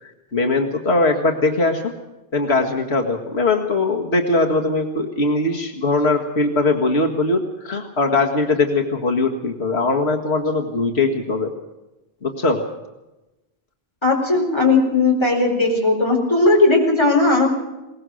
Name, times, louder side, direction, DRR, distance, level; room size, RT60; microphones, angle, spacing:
voice 1, 0.0-1.9 2.3-11.5 12.2-12.6, left 3 dB, 85° left, 2 dB, 2.1 m, -20 dB
voice 2, 14.0-17.5, left 3 dB, 25° left, 0 dB, 4.4 m, -17 dB
21.5 x 19.0 x 6.4 m, 1.0 s
omnidirectional pair, 1.1 m